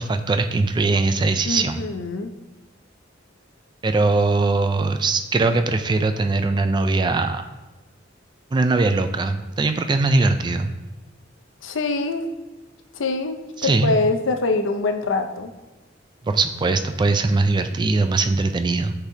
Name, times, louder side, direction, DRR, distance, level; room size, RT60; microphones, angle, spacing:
voice 1, 0.0-1.8 3.8-7.4 8.5-10.7 13.6-14.0 16.2-18.9, right 3 dB, 25° right, 8 dB, 0.3 m, -21 dB
voice 2, 1.5-2.3 11.6-12.2 12.9-15.5, left 3 dB, 85° left, 7 dB, 0.6 m, -24 dB
9.9 x 4.1 x 2.7 m, 1.1 s
head